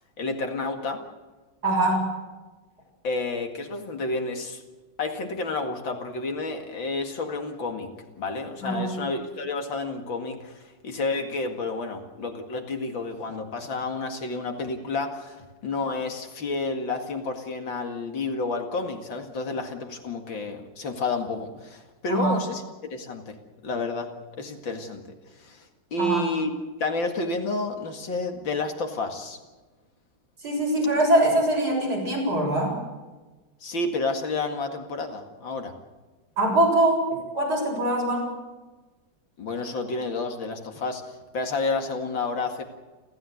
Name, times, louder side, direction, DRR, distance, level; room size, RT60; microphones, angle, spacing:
voice 1, 0.2-1.1 3.0-4.6 5.0-7.9 8.2-23.4 23.6-24.1 24.4-25.0 25.4-26.5 26.8-29.4 33.6-35.7 39.4-42.6, left 3 dB, 70° left, 5 dB, 2.8 m, -30 dB
voice 2, 1.6-2.1 8.6-9.0 22.1-22.4 26.0-26.2 30.4-32.8 36.4-37.0 37.3-38.3, right 1 dB, 50° right, -1 dB, 7.4 m, -23 dB
30.0 x 13.5 x 8.0 m, 1.2 s
omnidirectional pair, 2.2 m